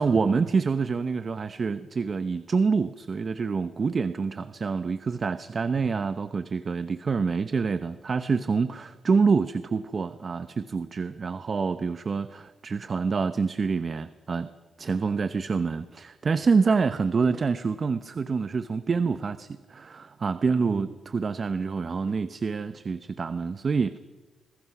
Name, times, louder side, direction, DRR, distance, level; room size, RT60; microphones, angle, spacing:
voice 1, 0.0-14.5 14.8-24.0, right 5 dB, 50° right, 12 dB, 0.9 m, -26 dB
26.0 x 21.5 x 6.0 m, 1.2 s
cardioid pair, 65°, 0 cm